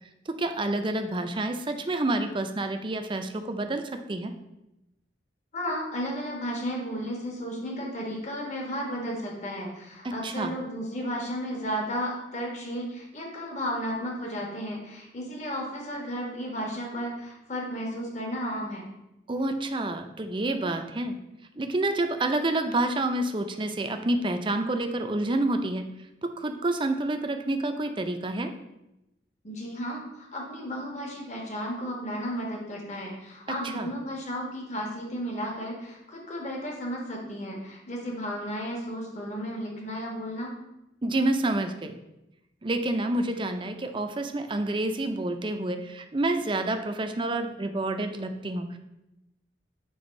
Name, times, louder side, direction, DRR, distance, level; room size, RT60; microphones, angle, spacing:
voice 1, 0.3-4.3 10.0-10.5 19.3-21.2 21.6-25.9 26.2-28.5 33.7-33.9 41.0-42.0 42.6-48.8, right 2 dB, 30° right, 6 dB, 0.5 m, -28 dB
voice 2, 5.5-18.8 29.4-40.5, equal, 40° left, -1 dB, 1.4 m, -33 dB
7.0 x 3.5 x 5.2 m, 0.91 s
head